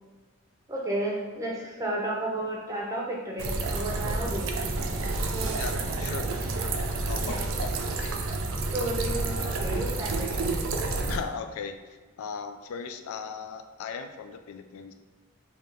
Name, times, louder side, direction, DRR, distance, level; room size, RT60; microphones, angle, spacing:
voice 1, 0.7-4.5 5.3-5.8 6.0-6.1 7.2-7.5 8.7-10.5, right 1 dB, 15° right, -3 dB, 0.6 m, -33 dB
sound 1, 3.4-11.2, right 3 dB, 65° right, 0.4 m, -29 dB
voice 2, 5.6-6.3 7.1-7.4 8.0-8.2 11.1-11.8 12.2-14.9, left 6 dB, 75° left, 8 dB, 0.3 m, -37 dB
3.3 x 2.8 x 3.6 m, 1.4 s
head